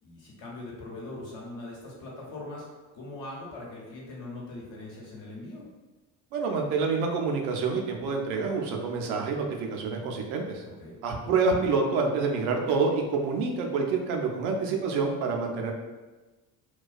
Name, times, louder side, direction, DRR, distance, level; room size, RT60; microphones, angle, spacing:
voice 1, 0.0-2.7 2.9-5.7 10.8-11.0, left 2 dB, 65° left, -4 dB, 1.0 m, -41 dB
voice 2, 6.3-10.6 11.0-15.7, right 4 dB, 80° right, 2 dB, 0.5 m, -27 dB
2.2 x 2.2 x 2.4 m, 1.2 s
hypercardioid pair, 55°, 47 cm